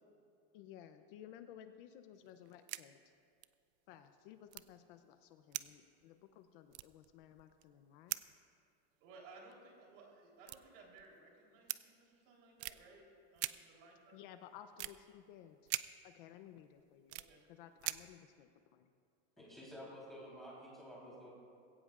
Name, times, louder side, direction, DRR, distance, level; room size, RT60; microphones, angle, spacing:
voice 1, 0.5-3.0 3.9-8.2 14.1-15.6 16.0-17.2 17.5-18.9, left 10 dB, 50° left, 9 dB, 0.7 m, -56 dB
sound 1, 2.3-2.8 3.1-3.2 3.4-3.5 4.5-5.1 5.5-6.4 6.7-7.8 8.1-8.4 9.5-9.6 10.4-11.2 11.7-11.8 12.6-12.8 13.4-13.5 14.8-14.9 15.7-15.8 16.4-17.3 17.8-18.2, right 17 dB, 75° right, 0.6 m, -42 dB
voice 2, 9.0-13.1 13.3-14.2 17.1-17.4, right 3 dB, 55° right, -1 dB, 3.7 m, -59 dB
voice 3, 19.4-21.3, equal, ahead, -6 dB, 3.6 m, -51 dB
21.0 x 17.0 x 2.5 m, 2.4 s
supercardioid pair, 170°, 34 cm